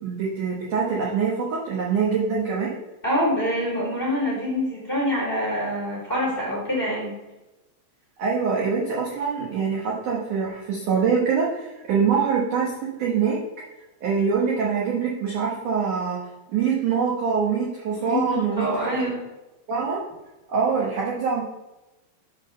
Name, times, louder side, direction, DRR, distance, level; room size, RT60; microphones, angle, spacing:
voice 1, 0.0-2.7 8.2-12.7 13.0-13.4 14.0-16.2 16.5-19.1 19.7-20.0 20.5-21.4, right 6 dB, 85° right, -4 dB, 1.8 m, -24 dB
voice 2, 3.0-7.1 18.0-19.2, equal, 15° left, -6 dB, 2.0 m, -25 dB
7.4 x 3.8 x 6.4 m, 1.0 s
omnidirectional pair, 5.4 m